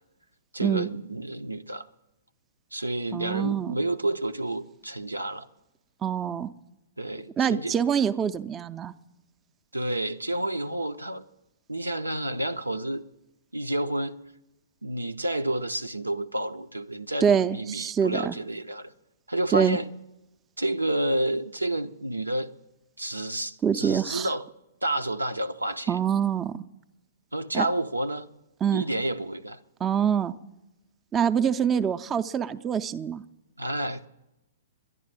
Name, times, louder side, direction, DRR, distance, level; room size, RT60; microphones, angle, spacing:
voice 1, 0.5-1.9 2.7-5.5 7.0-7.7 9.7-11.2 11.7-13.0 13.5-14.2 14.8-18.9 19.3-19.9 20.6-22.5 23.0-24.4 24.8-26.0 27.3-28.3 28.7-29.6 33.6-34.1, right 1 dB, 90° right, 0.6 m, -30 dB
voice 2, 3.1-3.7 6.0-6.5 7.4-8.9 17.2-18.3 19.5-19.8 23.6-24.3 25.9-26.5 27.5-27.7 28.6-28.9 29.8-30.3 31.1-33.2, right 8 dB, 20° right, 0.5 m, -25 dB
11.0 x 11.0 x 7.5 m
figure-of-eight pair, 115°, 0 cm